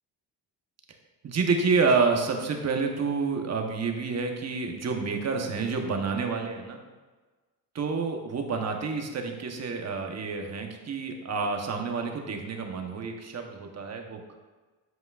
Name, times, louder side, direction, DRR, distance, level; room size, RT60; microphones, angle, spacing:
voice 1, 1.2-6.8 7.7-14.2, right 4 dB, 40° right, 3 dB, 1.1 m, -28 dB
8.1 x 7.6 x 2.5 m, 1.3 s
cardioid pair, 130°, 40 cm